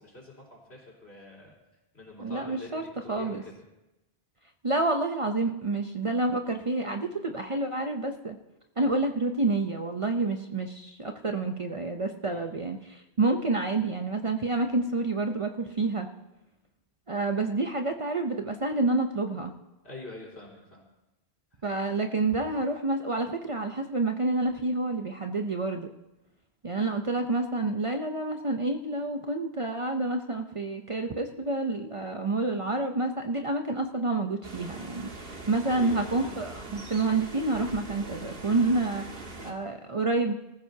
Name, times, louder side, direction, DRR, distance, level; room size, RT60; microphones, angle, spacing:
voice 1, 0.0-1.5 1.9-2.7 3.0-3.5 12.2-12.4 19.8-20.9 35.7-36.4, left 2 dB, 80° left, -3 dB, 4.3 m, -45 dB
voice 2, 2.2-2.8 3.1-3.4 4.6-8.4 8.8-16.1 17.1-19.5 21.6-25.9 26.6-40.3, right 2 dB, 35° right, 5 dB, 0.6 m, -28 dB
sound 1, 34.4-39.5, right 2 dB, 65° right, 1.7 m, -42 dB
24.0 x 14.5 x 2.7 m, 0.95 s
omnidirectional pair, 1.1 m